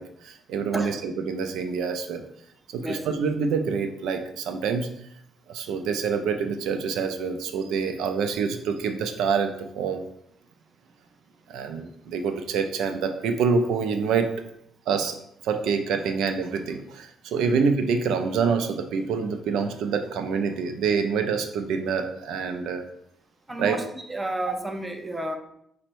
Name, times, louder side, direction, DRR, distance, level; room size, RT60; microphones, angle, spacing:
voice 1, 0.0-2.2 2.7-4.9 5.5-10.0 11.5-14.3 14.9-15.2 15.4-22.8 23.6-23.8, right 5 dB, 85° right, 7 dB, 0.4 m, -26 dB
voice 2, 23.5-25.4, right 1 dB, 15° right, 6 dB, 0.6 m, -31 dB
5.0 x 2.1 x 4.5 m, 0.74 s
cardioid pair, 90°, 0 cm